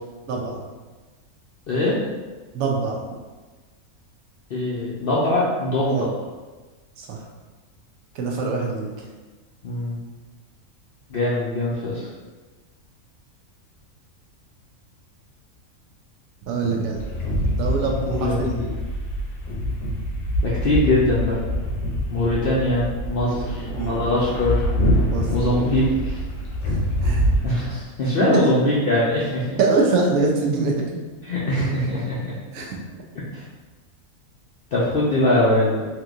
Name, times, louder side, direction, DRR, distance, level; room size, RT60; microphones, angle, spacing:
voice 1, 0.3-0.6 2.5-3.0 5.9-6.1 7.0-7.2 8.1-8.9 16.5-17.0 17.6-18.8 23.2-23.9 25.1-25.6 26.7-27.3 29.6-30.9 32.5-32.8, right 3 dB, 75° right, 0 dB, 1.0 m, -24 dB
voice 2, 4.5-6.1 9.6-10.0 11.1-12.1 18.1-18.6 20.4-21.4 22.1-24.6 25.3-26.2 27.4-29.6 31.2-32.3 33.3-33.4 34.7-35.9, left 1 dB, 65° left, -7 dB, 0.5 m, -22 dB
sound 1, 16.9-27.5, equal, 85° left, 1.2 m, -25 dB
3.4 x 2.9 x 2.4 m, 1.3 s
omnidirectional pair, 1.5 m